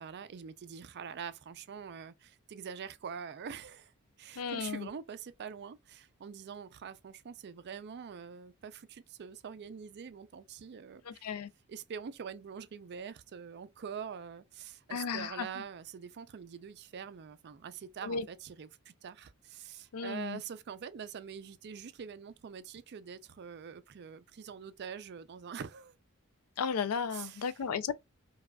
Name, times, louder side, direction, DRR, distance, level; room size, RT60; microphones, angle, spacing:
voice 1, 0.0-3.9 4.2-11.3 11.7-25.9 27.1-27.6, right 7 dB, 50° right, 0.4 m, -45 dB
voice 2, 4.4-4.9 11.0-11.5 14.9-15.5 18.0-18.2 19.9-20.4 26.6-27.9, left 6 dB, 75° left, 0.4 m, -34 dB
4.7 x 2.3 x 2.2 m
head